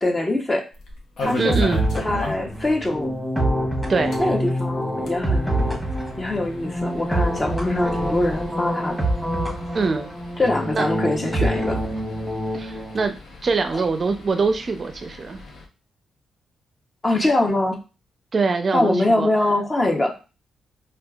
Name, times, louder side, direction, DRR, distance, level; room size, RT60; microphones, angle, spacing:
voice 1, 0.0-0.6 1.2-1.7 2.0-3.1 4.2-5.7 6.2-9.0 10.4-11.8 13.7-13.8 17.0-17.8 18.7-20.1, left 2 dB, 25° left, 1 dB, 0.8 m, -23 dB
sound 1, 0.7-2.7 2.9-3.0 3.3-3.4 4.0-15.6, left 3 dB, 70° left, 0.8 m, -37 dB
sound 2, 1.2-13.1, right 1 dB, ahead, 1.0 m, -26 dB
voice 2, 1.4-1.8 3.9-4.2 9.7-10.1 10.7-10.9 12.5-13.2 13.4-15.4 18.3-19.3, right 4 dB, 45° right, 7 dB, 0.5 m, -23 dB
4.3 x 2.4 x 2.3 m, 0.31 s
cardioid pair, 75°, 0 cm